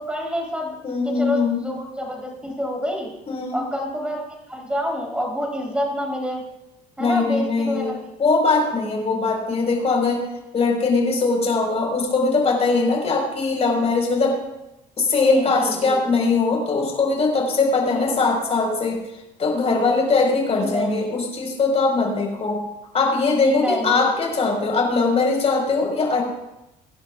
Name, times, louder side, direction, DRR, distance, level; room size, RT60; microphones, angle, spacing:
voice 1, 0.0-0.8 1.0-3.1 3.5-4.2 4.5-6.4 7.0-8.0 15.3-16.0 17.9-18.2 20.5-21.2 23.4-24.1, equal, 5° right, -1 dB, 3.6 m, -27 dB
voice 2, 0.8-1.6 3.2-3.6 7.0-10.3 10.5-14.4 15.0-19.0 19.4-22.6 22.9-26.2, left 3 dB, 40° left, 0 dB, 4.6 m, -21 dB
23.5 x 10.5 x 2.4 m, 0.93 s
cardioid pair, 110°, 17 cm